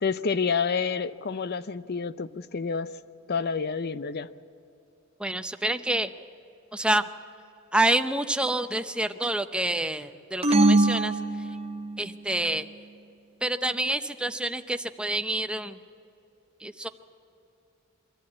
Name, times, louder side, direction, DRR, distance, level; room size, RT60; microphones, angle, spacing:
voice 1, 0.0-2.9 3.3-4.3, left 5 dB, 50° left, 14 dB, 0.6 m, -28 dB
voice 2, 5.2-6.1 6.7-7.1 7.7-11.6 12.0-12.7 13.4-15.8 16.6-16.9, right 1 dB, 5° right, 9 dB, 0.6 m, -28 dB
sound 1, 10.4-12.1, right 2 dB, 30° right, 0.9 m, -22 dB
23.5 x 14.0 x 8.5 m, 2.9 s
head